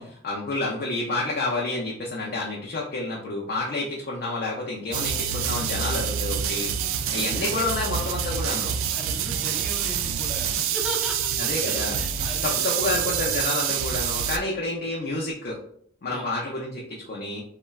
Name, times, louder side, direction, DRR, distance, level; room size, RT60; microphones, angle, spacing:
voice 1, 0.2-6.7 7.1-8.8 11.4-12.0 12.4-15.6 16.0-17.4, left 2 dB, 50° left, -3 dB, 0.4 m, -29 dB
sound 1, 4.9-14.4, right 8 dB, 90° right, 0.3 m, -27 dB
voice 2, 8.9-11.3 11.6-12.7 16.1-16.3, right 1 dB, 5° right, -2 dB, 0.4 m, -37 dB
3.6 x 2.1 x 2.2 m, 0.65 s
head